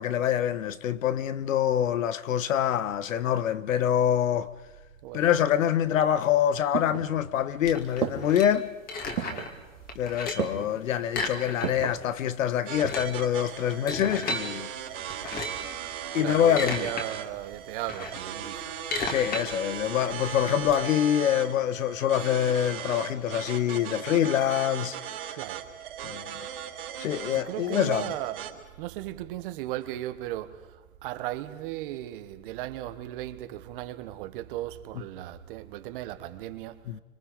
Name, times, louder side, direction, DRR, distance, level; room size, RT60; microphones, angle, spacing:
voice 1, 0.0-4.5 5.1-8.7 9.9-14.7 16.1-16.9 19.0-25.0 26.0-26.5 27.0-28.1 36.9-37.0, left 10 dB, 65° left, 1.2 m, -25 dB
sound 1, 6.2-7.5 8.0-8.5 9.2-9.6 10.4-10.8 11.6-12.0 12.6-13.2 13.5-13.6, right 9 dB, 75° right, 2.9 m, -33 dB
sound 2, 7.6-9.6 9.9-10.6 11.1-12.0 12.2-12.3 12.7-14.4 15.1-15.7 16.2-17.1 17.4-20.7, left 3 dB, 20° left, 2.6 m, -34 dB
sound 3, 12.7-28.5, right 10 dB, 55° right, 3.9 m, -38 dB
voice 2, 16.2-18.8 25.3-25.7 27.3-36.9, right 14 dB, 40° right, 1.3 m, -37 dB
29.5 x 25.5 x 5.3 m
hypercardioid pair, 145°, 42 cm